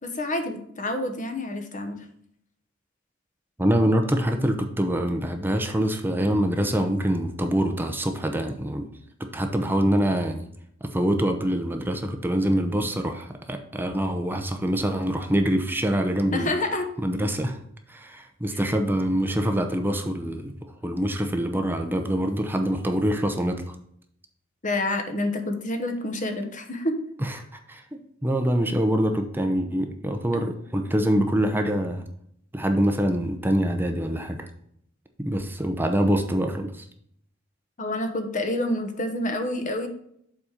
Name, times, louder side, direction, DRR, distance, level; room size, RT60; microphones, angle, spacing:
voice 1, 0.0-2.0 16.3-16.9 18.5-18.6 24.6-27.0 37.8-39.9, left 1 dB, 40° left, 5 dB, 1.1 m, -28 dB
voice 2, 3.6-8.9 9.3-10.4 10.9-16.5 17.0-17.6 17.9-20.5 20.8-23.7 27.2-32.0 32.5-34.5 35.2-36.8, equal, 10° right, 5 dB, 0.6 m, -25 dB
7.3 x 4.2 x 5.0 m, 0.69 s
head